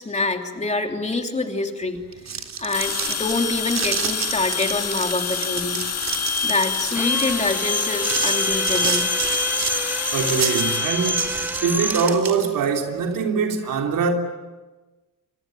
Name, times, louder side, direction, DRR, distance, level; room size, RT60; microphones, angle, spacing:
voice 1, 0.0-2.0 2.6-5.8 6.4-9.1, left 3 dB, 20° left, 3.2 m, -26 dB
sound 1, 2.0-12.6, right 7 dB, 55° right, 3.3 m, -30 dB
sound 2, 2.7-12.0, left 6 dB, 50° left, 2.1 m, -27 dB
Drill, 6.9-12.2, equal, 5° right, 1.3 m, -28 dB
voice 2, 10.1-14.1, right 5 dB, 80° right, 3.3 m, -23 dB
28.5 x 25.0 x 7.9 m
cardioid pair, 130°, 32 cm